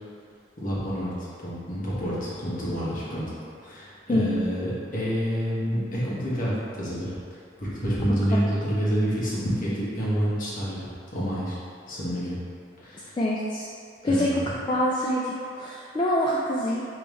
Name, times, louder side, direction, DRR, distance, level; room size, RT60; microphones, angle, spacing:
voice 1, 0.6-3.3 3.6-7.1 7.6-11.6 11.9-12.4 12.8-13.2 14.0-14.4, equal, 45° left, -9 dB, 1.3 m, -28 dB
voice 2, 13.2-13.7 14.0-14.4 14.7-16.8, left 1 dB, 25° left, -5 dB, 0.3 m, -25 dB
5.2 x 3.1 x 3.1 m, 2.3 s
head